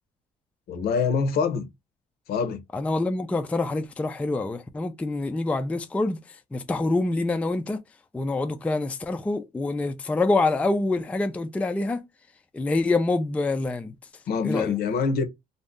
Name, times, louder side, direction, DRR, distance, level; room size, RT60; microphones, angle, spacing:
voice 1, 0.7-1.6 2.3-2.6 14.3-15.2, left 5 dB, 65° left, 0.7 m, -25 dB
voice 2, 2.7-6.2 6.5-7.8 8.1-12.0 12.5-13.9 14.4-14.8, left 2 dB, 10° left, 0.3 m, -26 dB
2.6 x 2.0 x 3.5 m
cardioid pair, 110°, 17 cm